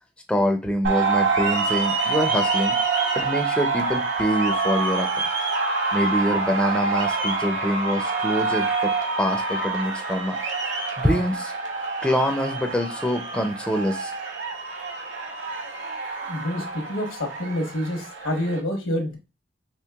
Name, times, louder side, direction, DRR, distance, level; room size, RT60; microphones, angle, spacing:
voice 1, 0.3-2.8 3.2-5.1 5.9-10.4 11.0-11.5 12.0-14.1, equal, 5° left, 3 dB, 0.4 m, -25 dB
sound 1, 0.8-18.6, right 4 dB, 60° right, 0.9 m, -26 dB
voice 2, 16.3-19.2, left 1 dB, 80° left, 4 dB, 1.1 m, -27 dB
4.5 x 3.1 x 2.3 m, 0.30 s
head